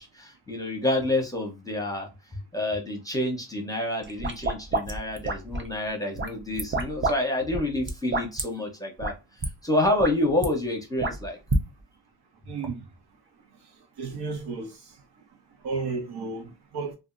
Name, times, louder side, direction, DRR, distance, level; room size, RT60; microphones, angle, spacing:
voice 1, 0.0-2.1 2.5-9.1 9.6-11.4, left 1 dB, 10° left, 0.9 m, -28 dB
sound 1, 4.0-5.7 6.2-7.2 7.4-8.4 9.0-9.1 9.4-9.5 9.8-10.5 11.0-11.6, right 2 dB, 30° right, 0.7 m, -28 dB
voice 2, 12.5-12.8 14.0-14.7 15.6-16.9, right 4 dB, 65° right, 0.9 m, -32 dB
2.7 x 2.5 x 2.5 m
cardioid pair, 100°, 43 cm